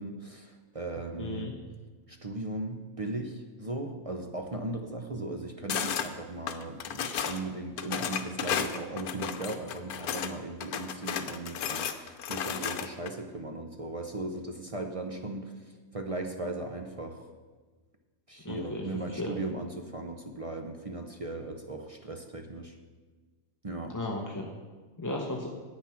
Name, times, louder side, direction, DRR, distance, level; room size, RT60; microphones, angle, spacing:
voice 1, 0.0-1.5 2.1-15.5 15.9-17.3 18.3-22.7 23.6-24.0, right 2 dB, 35° right, 4 dB, 0.5 m, -37 dB
voice 2, 1.2-1.6 18.4-19.4 23.9-24.5 25.0-25.5, left 2 dB, 20° left, 0 dB, 0.6 m, -35 dB
sound 1, 5.7-6.1 6.5-7.4 7.8-10.3 10.6-13.1, left 8 dB, 90° left, 1.2 m, -33 dB
9.4 x 8.7 x 5.8 m, 1.4 s
omnidirectional pair, 1.5 m